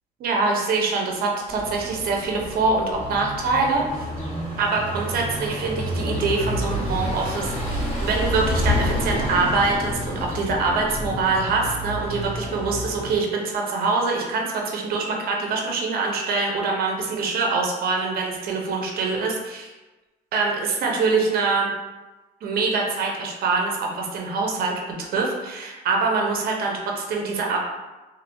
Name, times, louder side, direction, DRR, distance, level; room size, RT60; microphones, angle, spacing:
voice 1, 0.2-4.1 4.6-19.7 20.3-21.7 22.4-27.6, right 3 dB, 65° right, 0 dB, 0.7 m, -24 dB
sound 1, 1.5-13.2, equal, 35° left, 1.5 m, -29 dB
3.0 x 2.7 x 2.6 m, 1.1 s
cardioid pair, 110°, 17 cm